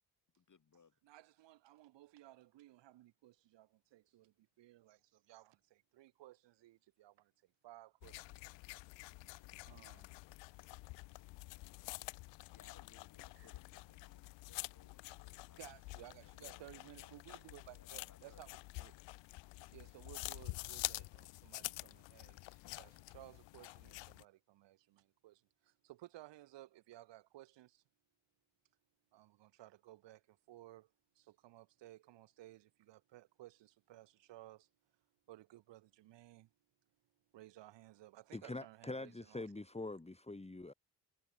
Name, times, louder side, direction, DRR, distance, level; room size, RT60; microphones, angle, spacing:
voice 1, 0.4-1.0 12.2-15.7 16.2-17.4 17.7-19.0, left 6 dB, 45° left, 7.6 m, -67 dB
voice 2, 1.0-8.7 9.2-10.1 10.6-10.7 12.4-12.5 13.4-13.5 15.6-19.0 19.7-27.8 29.1-34.7 35.3-36.5 37.3-39.5, right 15 dB, 75° right, 4.8 m, -58 dB
sound 1, 8.0-24.2, left 24 dB, 80° left, 0.8 m, -48 dB
voice 3, 38.3-40.7, left 2 dB, 15° left, 2.8 m, -44 dB
supercardioid pair, 55°, 43 cm